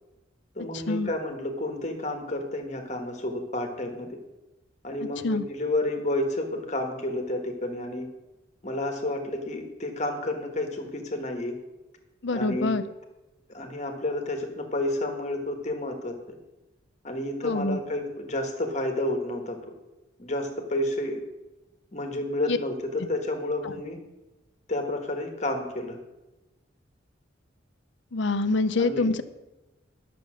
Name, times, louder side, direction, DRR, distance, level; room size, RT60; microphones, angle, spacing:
voice 1, 0.6-4.2 4.8-8.1 8.6-11.5 12.3-12.8 13.5-16.4 17.0-19.6 20.2-21.2 21.9-24.0 24.7-26.0 28.7-29.2, left 1 dB, 35° left, 4 dB, 1.4 m, -30 dB
voice 2, 12.2-12.8 17.4-17.8 22.5-22.6 28.1-29.2, left 3 dB, 65° left, 11 dB, 0.6 m, -25 dB
11.0 x 6.9 x 6.3 m, 1.0 s
head